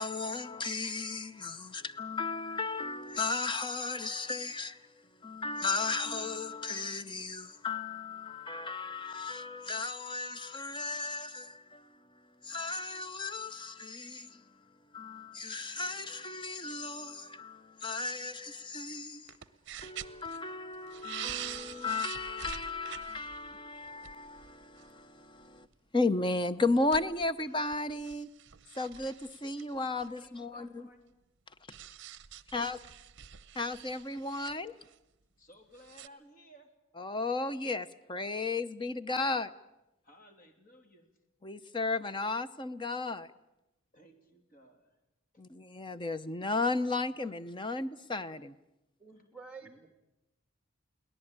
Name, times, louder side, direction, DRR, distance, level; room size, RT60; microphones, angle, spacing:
voice 1, 0.0-19.4 19.8-25.7 25.9-28.3 28.7-30.9 31.5-31.6 32.5-32.8 33.6-34.7 37.0-39.5 41.4-43.3 45.4-48.5, left 3 dB, 20° left, 13 dB, 0.7 m, -35 dB
sound 1, 19.3-20.4 20.7-25.0 25.4-25.6 26.5-30.4 31.7-35.0 35.7-36.1, right 10 dB, 55° right, 0.8 m, -46 dB
voice 2, 30.0-31.2 35.4-36.7 40.0-41.1 43.9-45.0 45.3-45.4 49.1-49.3 49.6-49.9, equal, 40° left, 5 dB, 3.1 m, -58 dB
voice 3, 49.0-49.9, right 4 dB, 5° right, 6 dB, 2.6 m, -49 dB
22.5 x 18.0 x 8.9 m, 0.93 s
head